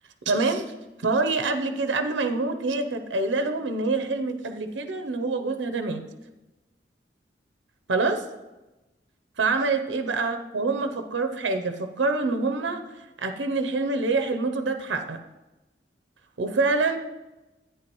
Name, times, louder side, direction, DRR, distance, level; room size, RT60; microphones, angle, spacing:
voice 1, 0.3-0.7 1.0-6.0 7.9-8.2 9.4-12.8 13.2-15.2 16.4-17.0, right 3 dB, 85° right, 7 dB, 0.7 m, -26 dB
11.0 x 9.3 x 3.0 m, 1.1 s
head